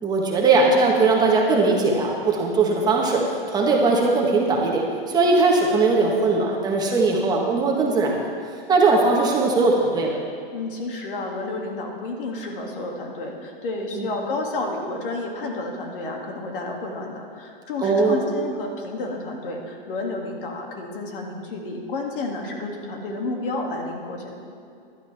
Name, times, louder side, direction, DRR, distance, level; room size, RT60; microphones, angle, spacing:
voice 1, 0.0-8.2 8.7-10.2 13.9-14.1 17.8-18.3, right 3 dB, 15° right, -1 dB, 1.2 m, -20 dB
voice 2, 10.5-24.3, left 2 dB, 65° left, 1 dB, 2.3 m, -31 dB
15.5 x 11.5 x 3.4 m, 2.5 s
hypercardioid pair, 150°, 29 cm